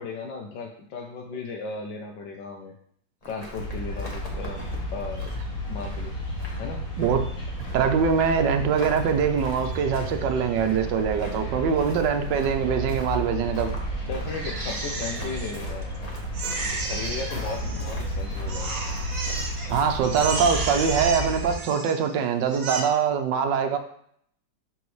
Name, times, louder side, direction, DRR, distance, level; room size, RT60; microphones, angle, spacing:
voice 1, 0.0-2.7 3.3-4.7 4.9-6.2 6.6-6.9 14.1-15.9 16.6-18.8, left 4 dB, 80° left, 0 dB, 1.4 m, -36 dB
sound 1, 3.2-20.9, left 1 dB, 25° left, 1.2 m, -43 dB
sound 2, 3.5-21.5, equal, 50° left, 2.3 m, -32 dB
voice 2, 7.7-13.7 19.7-23.8, right 7 dB, 75° right, 7 dB, 1.4 m, -23 dB
Crying sobbing, 14.3-16.0 16.3-18.1 18.5-19.7 20.0-22.1 22.5-22.8, right 3 dB, 55° right, 1.4 m, -33 dB
11.0 x 4.0 x 3.1 m, 0.65 s
omnidirectional pair, 1.9 m